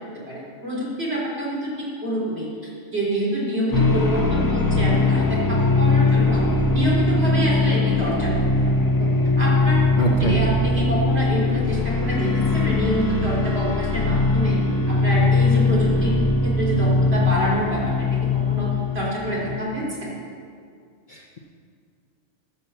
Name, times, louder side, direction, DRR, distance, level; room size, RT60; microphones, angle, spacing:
voice 1, 0.3-1.7 2.0-2.5 2.9-6.4 6.7-8.3 8.6-8.7 9.0-9.1 9.4-9.8 10.2-14.6 14.9-16.2 16.4-18.1 18.5-18.7 18.9-20.0, right 1 dB, 50° right, -6 dB, 4.1 m, -26 dB
sound 1, 3.7-19.6, left 3 dB, 20° left, 0.8 m, -21 dB
voice 2, 10.0-10.4 21.1-21.4, left 3 dB, 40° left, -1 dB, 1.0 m, -23 dB
13.5 x 6.9 x 7.1 m, 2.2 s
omnidirectional pair, 1.4 m